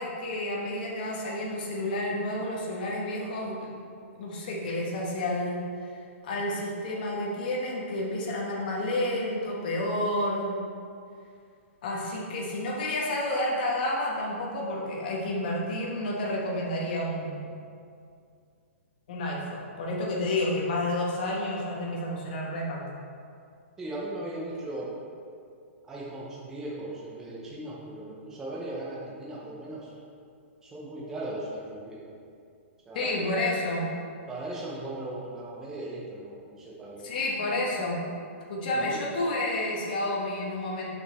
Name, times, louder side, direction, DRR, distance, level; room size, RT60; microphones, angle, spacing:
voice 1, 0.0-3.7 4.1-5.6 6.2-10.6 11.8-17.5 19.1-22.9 32.9-33.9 37.0-38.0 38.5-40.9, left 1 dB, 40° left, -3 dB, 1.4 m, -30 dB
voice 2, 23.8-24.9 25.8-29.9 30.6-32.0 32.9-33.1 34.3-37.1 38.7-39.0, right 1 dB, 5° right, -6 dB, 0.6 m, -38 dB
6.5 x 5.7 x 4.2 m, 2.3 s
hypercardioid pair, 175°, 7 cm